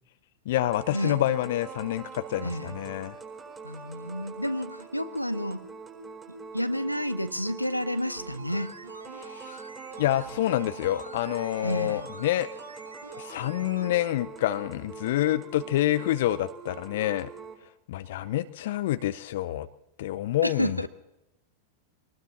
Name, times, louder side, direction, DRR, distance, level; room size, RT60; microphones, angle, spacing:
voice 1, 0.5-3.1 9.2-9.6 10.0-12.5 13.2-17.3 17.9-19.7 20.0-20.8, left 13 dB, 55° left, 14 dB, 0.6 m, -27 dB
sound 1, 0.5-17.5, right 5 dB, 15° right, 4.6 m, -44 dB
voice 2, 2.4-2.8 3.6-5.7 6.3-8.8 11.6-12.1 20.4-20.9, equal, 90° left, 11 dB, 0.9 m, -30 dB
sound 2, 7.9-14.0 14.2-14.3, right 2 dB, 80° right, 0.9 m, -47 dB
24.0 x 19.5 x 2.9 m, 0.90 s
figure-of-eight pair, 90°, 0 cm